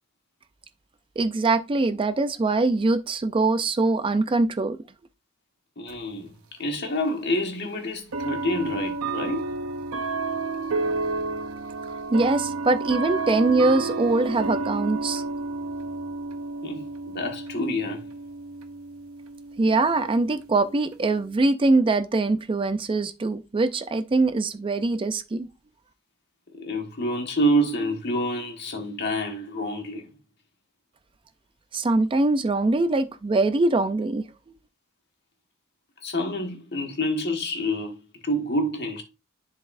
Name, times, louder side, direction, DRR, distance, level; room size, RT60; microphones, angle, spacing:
voice 1, 1.2-4.8 11.9-15.2 19.6-25.5 31.7-34.2, right 3 dB, 25° right, 0.4 m, -23 dB
voice 2, 5.8-6.3 6.6-9.4 16.6-18.0 26.6-30.1 36.0-39.0, equal, 50° left, 1.5 m, -27 dB
sound 1, 5.9-6.0 7.1-7.2 8.1-21.3, right 3 dB, 80° right, 0.8 m, -31 dB
10.5 x 4.0 x 2.6 m
head